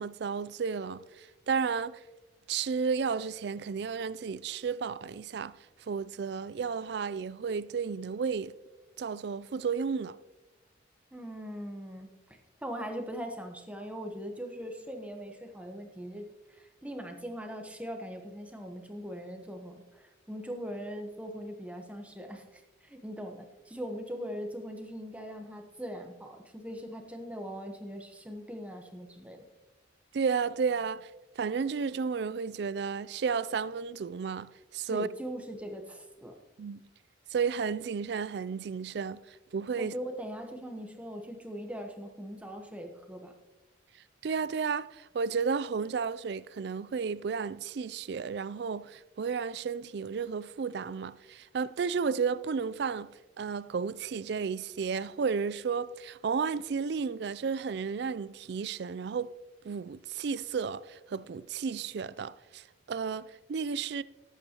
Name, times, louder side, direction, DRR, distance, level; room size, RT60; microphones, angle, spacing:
voice 1, 0.0-2.0 2.5-5.6 5.9-8.5 9.0-10.2 30.1-31.1 31.4-35.1 36.6-36.9 37.3-39.2 39.5-39.9 44.2-53.1 53.4-59.3 59.6-64.0, right 5 dB, 55° right, 0.3 m, -32 dB
voice 2, 11.1-29.4 34.9-36.3 39.8-43.3, equal, 5° right, 1.0 m, -41 dB
18.5 x 8.3 x 2.9 m
head